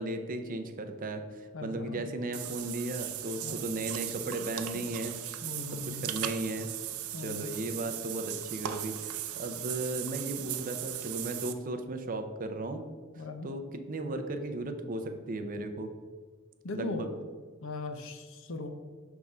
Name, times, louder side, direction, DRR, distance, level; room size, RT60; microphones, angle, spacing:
voice 1, 0.0-5.1 5.9-6.7 7.2-12.8 13.4-15.9 16.7-17.1, right 2 dB, 40° right, 7 dB, 0.5 m, -36 dB
voice 2, 1.5-2.1 3.4-3.6 4.7-4.9 5.4-6.1 7.1-7.5 13.2-13.5 16.6-17.1 17.6-18.7, left 3 dB, 65° left, 6 dB, 0.7 m, -39 dB
Water / Bathtub (filling or washing), 2.3-11.5, right 12 dB, 85° right, 0.5 m, -38 dB
6.1 x 3.5 x 5.3 m, 1.5 s
head